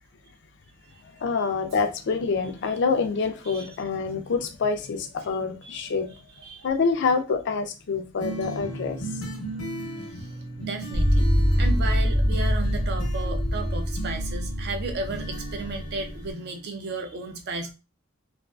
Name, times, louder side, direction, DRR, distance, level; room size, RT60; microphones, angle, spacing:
voice 1, 1.2-6.1 6.6-9.0, left 5 dB, 55° left, 0.4 m, -26 dB
sound 1, 8.2-16.6, right 1 dB, 80° left, 0.7 m, -37 dB
voice 2, 10.0-11.3 11.6-17.7, right 3 dB, 50° right, 0.4 m, -34 dB
sound 2, 10.9-16.3, equal, 85° right, 1.1 m, -24 dB
2.4 x 2.3 x 2.2 m
head